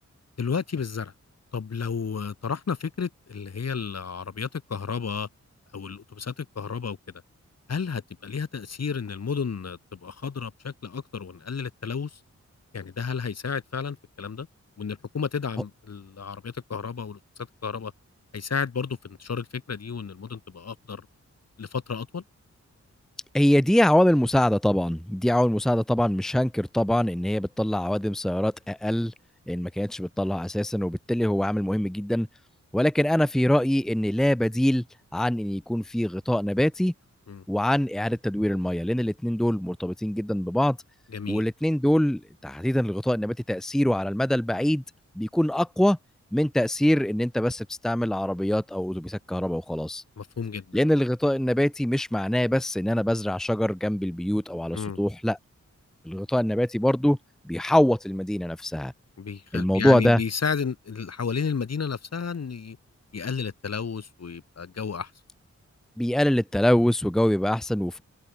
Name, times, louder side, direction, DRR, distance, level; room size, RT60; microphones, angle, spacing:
voice 1, 0.4-1.1 1.5-5.3 5.7-7.0 7.7-12.2 12.7-14.5 14.8-17.2 17.6-17.9 18.3-21.1 21.6-22.2 37.3-37.4 41.1-41.4 50.2-50.8 54.7-55.0 59.2-62.8 63.1-65.1, left 6 dB, 60° left, 3.0 m, -32 dB
voice 2, 23.3-29.1 29.5-32.3 32.7-34.8 35.1-36.9 37.5-40.8 41.3-44.8 45.2-46.0 46.3-50.0 50.7-55.4 56.0-57.2 57.4-58.9 59.5-60.2 66.0-68.0, left 1 dB, ahead, 1.0 m, -24 dB
wide cardioid pair, 100°, 29 cm